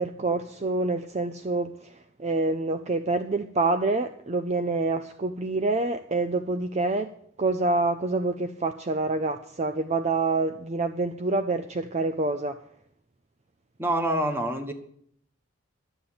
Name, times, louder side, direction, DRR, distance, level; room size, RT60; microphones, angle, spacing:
voice 1, 0.0-7.1 7.4-12.6, right 3 dB, 35° right, 9 dB, 0.5 m, -27 dB
voice 2, 13.8-14.7, right 1 dB, 10° right, 6 dB, 1.3 m, -26 dB
12.0 x 7.6 x 8.7 m, 0.67 s
head